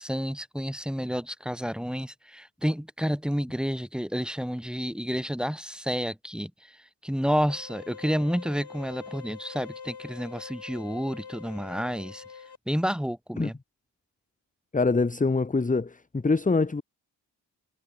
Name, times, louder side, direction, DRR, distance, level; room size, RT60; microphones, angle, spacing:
voice 1, 0.0-6.8 7.0-12.2 12.7-13.6, equal, ahead, 2.5 m, -30 dB
sound 1, 7.5-12.6, left 6 dB, 60° left, 6.6 m, -44 dB
voice 2, 14.7-16.8, left 3 dB, 20° left, 1.0 m, -24 dB
supercardioid pair, 45°, 44 cm